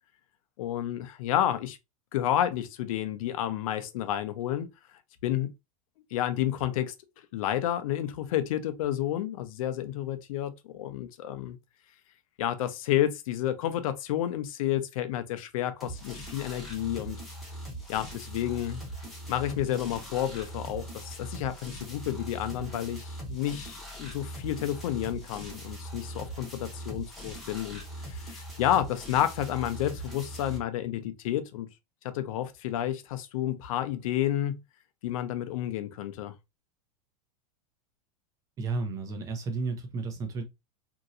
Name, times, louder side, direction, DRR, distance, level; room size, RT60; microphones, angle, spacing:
voice 1, 0.6-1.8 2.1-4.7 5.2-5.5 6.1-6.9 7.3-11.6 12.4-17.2 17.9-18.8 19.3-31.7 32.0-34.6 35.0-36.3, left 12 dB, 65° left, 0.6 m, -30 dB
sound 1, 15.8-30.6, right 1 dB, ahead, 1.0 m, -41 dB
voice 2, 38.6-40.4, right 3 dB, 15° right, 0.6 m, -32 dB
3.0 x 2.7 x 2.5 m
supercardioid pair, 165°, 19 cm